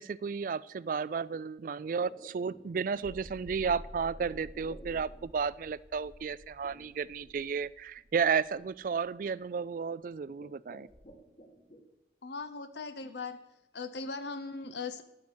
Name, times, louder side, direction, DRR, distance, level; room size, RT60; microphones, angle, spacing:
voice 1, 0.0-10.9, right 6 dB, 50° right, 20 dB, 0.3 m, -33 dB
sound 1, 1.9-5.5 6.6-7.3 8.0-8.1 8.6-8.9 9.5-9.9 10.2-11.8, right 1 dB, 45° left, 2.1 m, -54 dB
sound 2, 2.9-9.4, equal, ahead, 1.3 m, -51 dB
voice 2, 12.2-13.4 13.7-15.0, left 4 dB, 70° left, 10 dB, 0.7 m, -39 dB
11.5 x 8.5 x 6.2 m, 0.95 s
head